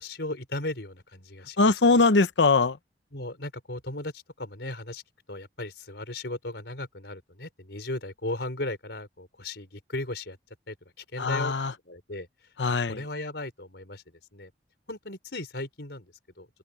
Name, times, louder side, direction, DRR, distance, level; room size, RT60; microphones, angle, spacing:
voice 1, 0.0-1.6 3.1-5.0 5.3-10.4 10.7-11.5 11.9-12.3 12.7-14.5 14.9-16.5, left 2 dB, 70° left, 5.5 m, -36 dB
voice 2, 1.6-2.8 11.2-11.7 12.6-13.0, left 3 dB, 85° left, 0.9 m, -22 dB
open air
head